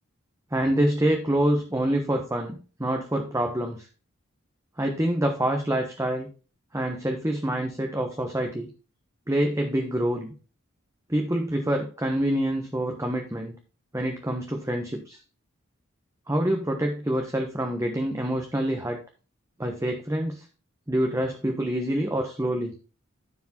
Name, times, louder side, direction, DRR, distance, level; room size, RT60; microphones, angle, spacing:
voice 1, 0.5-3.9 4.8-6.3 6.7-8.7 9.3-10.3 11.1-13.5 13.9-15.2 16.3-19.0 19.6-20.4 20.9-22.7, right 1 dB, 15° right, 3 dB, 1.1 m, -26 dB
13.5 x 4.7 x 4.3 m, 0.35 s
head